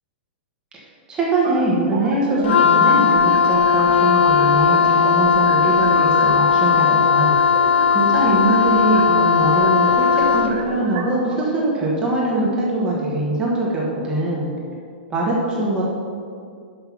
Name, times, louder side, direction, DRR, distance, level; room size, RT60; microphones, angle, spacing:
voice 1, 1.1-7.4 7.9-14.5 15.1-15.9, right 2 dB, 15° right, -4 dB, 1.2 m, -22 dB
sound 1, 1.4-11.4, right 3 dB, 35° right, 0.9 m, -32 dB
Wind instrument woodwind instrument, 2.4-10.6, left 6 dB, 90° left, 0.4 m, -17 dB
6.7 x 5.9 x 5.9 m, 2.3 s
hypercardioid pair, 170°, 6 cm